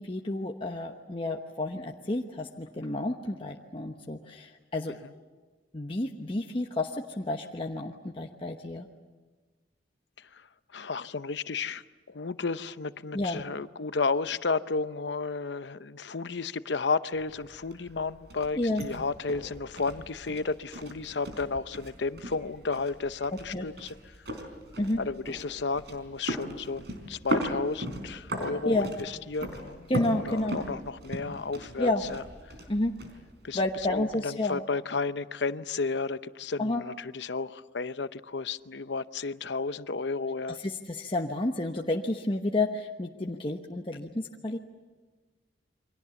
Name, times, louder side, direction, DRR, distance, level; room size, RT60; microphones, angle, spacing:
voice 1, 0.0-4.9 5.7-8.9 13.1-13.4 18.5-18.8 23.5-23.6 24.8-25.0 28.6-28.9 29.9-30.6 31.8-32.0 32.7-32.9 33.5-34.6 36.6-36.8 40.6-44.6, left 2 dB, 30° left, 1.1 m, -30 dB
voice 2, 10.7-24.0 25.0-29.9 30.3-32.2 33.4-33.6 33.9-40.6, left 4 dB, 75° left, 0.8 m, -32 dB
sound 1, 17.1-34.1, equal, 65° right, 4.5 m, -39 dB
29.0 x 24.0 x 7.1 m
head